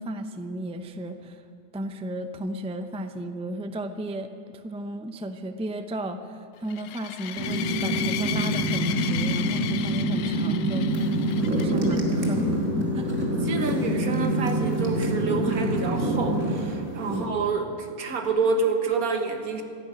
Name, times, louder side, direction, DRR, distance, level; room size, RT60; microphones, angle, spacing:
voice 1, 0.0-1.4 1.7-12.5 12.9-13.1 17.1-17.4, right 1 dB, 10° right, 8 dB, 0.4 m, -34 dB
sound 1, 6.7-12.0, left 11 dB, 70° left, 0.9 m, -35 dB
sound 2, 7.3-16.4, right 1 dB, 40° left, 5.0 m, -26 dB
sound 3, 10.9-17.3, right 2 dB, 55° right, 2.4 m, -32 dB
voice 2, 13.3-19.6, right 4 dB, 80° right, 5 dB, 1.9 m, -28 dB
13.5 x 11.5 x 9.2 m, 2.4 s
omnidirectional pair, 1.5 m